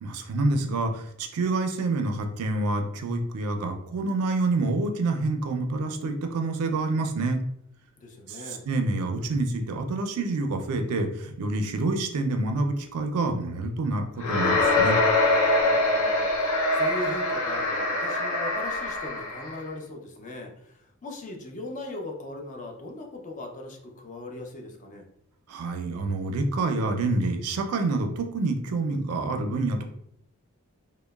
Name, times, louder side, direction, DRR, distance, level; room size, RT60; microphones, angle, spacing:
voice 1, 0.0-7.4 8.3-15.0 25.5-29.8, right 2 dB, 80° right, 5 dB, 0.4 m, -27 dB
voice 2, 8.0-8.6 15.6-25.0, left 2 dB, 35° left, 2 dB, 0.4 m, -39 dB
sound 1, 14.2-19.6, left 2 dB, 65° left, 0.7 m, -24 dB
2.9 x 2.0 x 2.2 m, 0.70 s
head